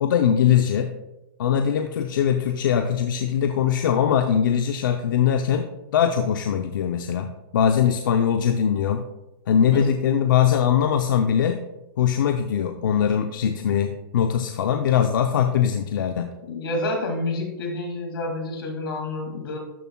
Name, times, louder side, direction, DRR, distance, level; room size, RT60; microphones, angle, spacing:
voice 1, 0.0-0.9 1.4-9.1 9.5-11.6 12.0-16.3, left 8 dB, 60° left, 6 dB, 0.6 m, -21 dB
voice 2, 16.5-19.6, left 2 dB, 80° left, 2 dB, 2.2 m, -28 dB
12.0 x 7.1 x 2.3 m, 0.97 s
hypercardioid pair, 165°, 12 cm